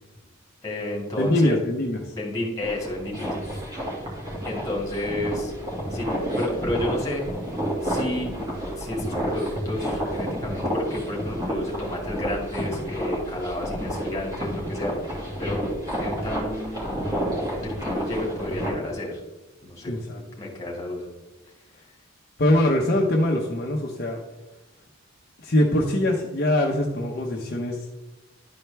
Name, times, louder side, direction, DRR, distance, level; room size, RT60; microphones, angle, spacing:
voice 1, 0.6-1.6 2.1-3.3 4.4-5.5 5.9-7.2 7.8-8.3 8.8-14.9 15.4-15.6 16.0-17.2 17.6-19.2 19.6-19.9 20.4-21.1, left 1 dB, 15° left, -2 dB, 2.0 m, -31 dB
voice 2, 1.2-2.0 19.9-20.2 22.4-24.2 25.4-27.8, left 1 dB, 50° left, -1 dB, 0.9 m, -22 dB
sound 1, 2.6-18.7, equal, 20° right, 2.2 m, -30 dB
11.5 x 4.5 x 3.4 m, 1.1 s
head